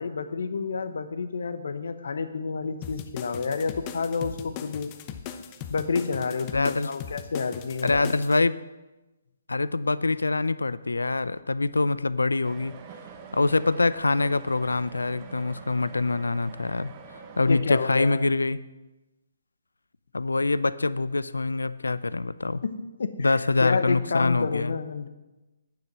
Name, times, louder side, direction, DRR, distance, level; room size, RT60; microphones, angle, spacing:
voice 1, 0.0-4.9 5.7-8.1 17.5-18.2 22.6-25.1, left 5 dB, 65° left, 11 dB, 1.1 m, -29 dB
sound 1, 2.8-8.4, left 8 dB, 30° left, 0.9 m, -39 dB
voice 2, 6.5-6.9 7.8-8.6 9.5-12.8 13.3-16.9 17.4-18.6 20.1-22.6 23.2-24.7, left 3 dB, 85° left, 17 dB, 0.5 m, -25 dB
sound 2, 12.4-17.6, right 6 dB, 30° right, 1.3 m, -45 dB
10.0 x 9.3 x 6.1 m, 1.1 s
figure-of-eight pair, 140°, 0 cm